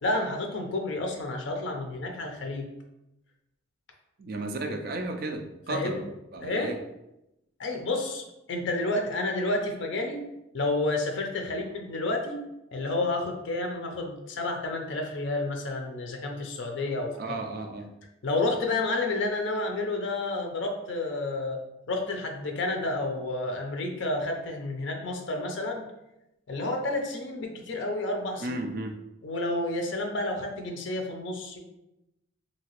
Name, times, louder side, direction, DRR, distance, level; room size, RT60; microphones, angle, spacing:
voice 1, 0.0-2.7 5.7-6.0 6.4-6.7 7.6-10.2 10.5-12.4 12.7-17.1 18.2-21.6 21.9-25.8 26.5-28.6 29.2-31.6, left 2 dB, 60° left, 3 dB, 0.5 m, -30 dB
voice 2, 4.2-6.1 6.3-6.8 17.2-17.9 28.4-29.0, right 2 dB, 45° right, 4 dB, 0.3 m, -34 dB
2.8 x 2.7 x 2.9 m, 0.90 s
head